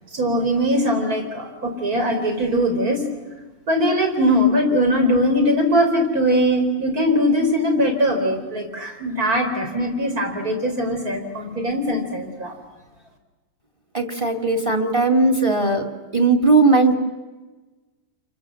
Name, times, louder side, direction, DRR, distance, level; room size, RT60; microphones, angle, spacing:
voice 1, 0.1-3.0 3.7-12.5, equal, 50° right, 3 dB, 4.3 m, -21 dB
voice 2, 13.9-15.9 16.1-16.9, right 3 dB, 15° right, 7 dB, 2.2 m, -18 dB
29.0 x 24.0 x 7.6 m, 1.2 s
omnidirectional pair, 2.0 m